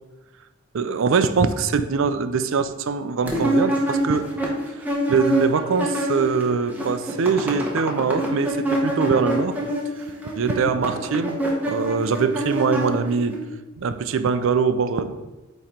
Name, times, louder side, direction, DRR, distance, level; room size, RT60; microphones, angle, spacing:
voice 1, 0.7-4.3 5.1-9.6 10.0-10.1 10.4-11.4 11.7-13.4 13.8-15.1, right 5 dB, 60° right, 11 dB, 0.4 m, -22 dB
sound 1, 3.3-6.4 6.7-13.4, equal, 5° right, 0.9 m, -25 dB
8.7 x 3.1 x 4.3 m, 1.1 s
head